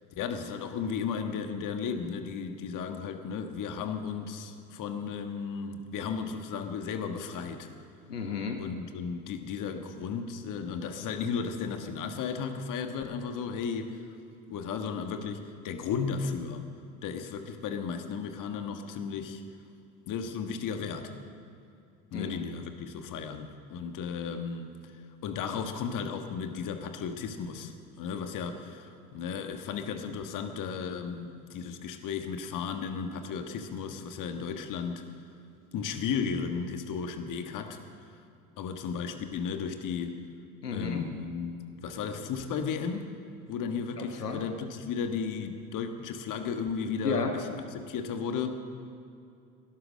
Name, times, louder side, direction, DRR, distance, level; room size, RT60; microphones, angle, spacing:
voice 1, 0.1-7.7 8.6-14.0 14.5-16.6 17.0-19.4 20.1-21.1 22.1-24.7 25.2-35.1 35.7-37.8 38.6-40.2 40.7-43.1 43.5-48.6, left 6 dB, 45° left, 6 dB, 1.6 m, -34 dB
voice 2, 8.1-8.6 22.1-22.4 40.6-41.1 44.0-44.4 47.0-47.3, left 5 dB, 85° left, 4 dB, 1.2 m, -32 dB
18.0 x 11.5 x 6.4 m, 2.6 s
figure-of-eight pair, 70°, 46 cm